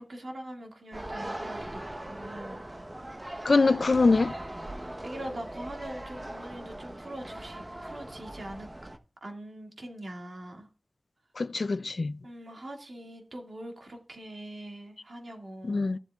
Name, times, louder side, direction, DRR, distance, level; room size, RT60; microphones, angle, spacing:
voice 1, 0.0-2.6 4.7-8.7 9.2-10.7 12.2-15.9, right 1 dB, 65° right, 2.3 m, -42 dB
sound 1, 0.9-9.0, right 1 dB, 25° right, 1.0 m, -40 dB
voice 2, 3.4-4.4 11.4-12.2 15.6-16.0, left 3 dB, 65° left, 0.4 m, -24 dB
13.5 x 8.0 x 2.4 m
wide cardioid pair, 50°, 0 cm